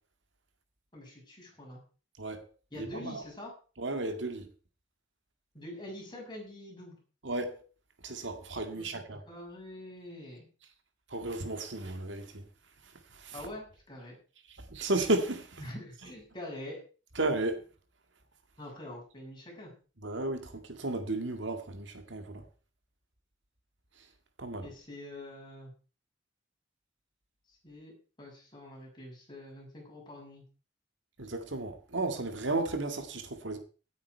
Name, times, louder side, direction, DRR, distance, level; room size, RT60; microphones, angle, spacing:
voice 1, 0.9-1.8 2.7-3.5 5.5-7.0 8.7-8.9 9.2-10.5 13.3-14.2 15.6-16.8 18.6-19.7 24.6-25.7 27.5-27.9 28.2-30.4, left 1 dB, 25° left, 6.6 m, -45 dB
voice 2, 2.8-3.2 3.8-4.5 7.2-7.6 8.0-9.2 11.1-12.4 13.1-13.3 14.6-15.6 17.2-17.6 20.0-22.4 24.4-24.7 31.2-33.6, right 2 dB, 65° right, 2.0 m, -33 dB
17.0 x 9.3 x 4.6 m
head